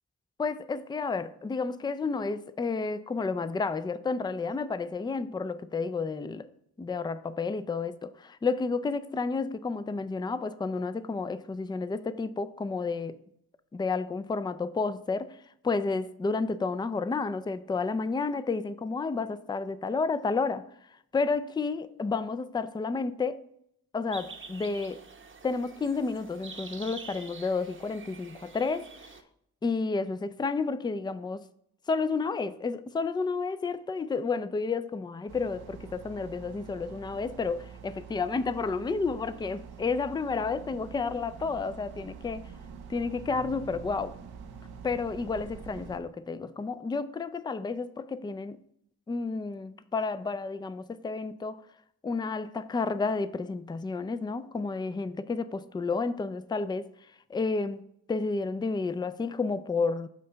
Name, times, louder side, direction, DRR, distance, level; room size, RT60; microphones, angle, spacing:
voice 1, 0.4-6.5 6.8-13.2 13.7-15.3 15.6-20.6 21.1-23.5 23.9-25.0 25.4-28.9 29.6-31.4 31.9-42.4 42.9-44.2 44.8-48.6 49.1-51.6 52.0-56.9 57.3-57.8 58.1-60.1, left 4 dB, 15° left, 0.3 m, -31 dB
sound 1, 24.1-29.2, right 4 dB, 35° right, 0.8 m, -46 dB
sound 2, 35.3-46.0, right 6 dB, 85° right, 0.7 m, -46 dB
7.5 x 2.8 x 5.5 m
supercardioid pair, 45°, 37 cm